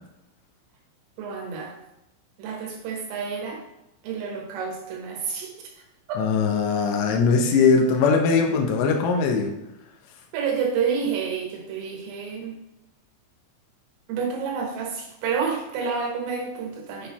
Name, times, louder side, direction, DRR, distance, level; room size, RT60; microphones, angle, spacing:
voice 1, 1.2-1.8 2.4-3.6 4.0-5.5 6.1-6.2 10.3-12.6 14.1-17.1, right 6 dB, 80° right, 0 dB, 3.9 m, -29 dB
voice 2, 6.2-9.5, left 5 dB, 75° left, 2 dB, 2.7 m, -20 dB
8.9 x 3.9 x 4.3 m, 0.90 s
omnidirectional pair, 5.9 m